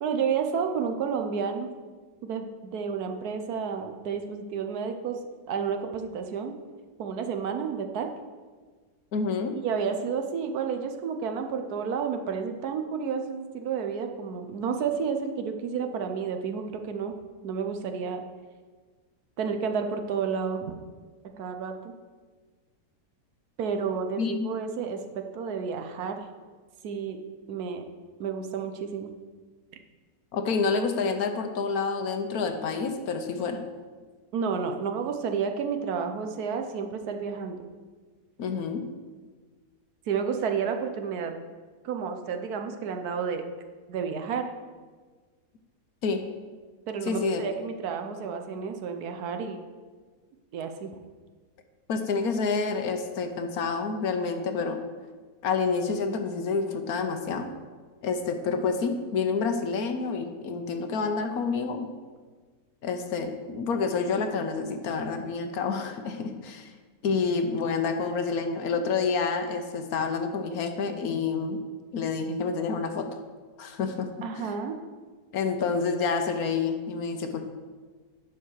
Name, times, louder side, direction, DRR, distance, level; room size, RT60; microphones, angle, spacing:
voice 1, 0.0-1.7 2.2-5.2 5.5-6.5 7.0-8.1 9.6-17.1 17.4-18.2 19.4-20.7 21.4-21.9 23.6-26.2 26.8-27.2 27.5-27.8 28.2-29.1 34.3-37.6 40.1-41.3 41.8-43.4 43.9-44.5 46.9-49.6 50.5-50.9 74.2-74.8, right 6 dB, 75° right, 6 dB, 1.3 m, -31 dB
voice 2, 9.1-9.5 24.2-24.4 30.3-33.6 38.4-38.8 46.0-46.2 47.1-47.4 51.9-54.8 55.4-57.5 58.0-61.9 62.8-66.7 67.0-71.6 71.9-73.1 73.6-74.1 74.3-74.5 75.3-77.4, left 5 dB, 70° left, 6 dB, 1.3 m, -28 dB
10.0 x 4.8 x 6.3 m, 1.5 s
omnidirectional pair, 1.7 m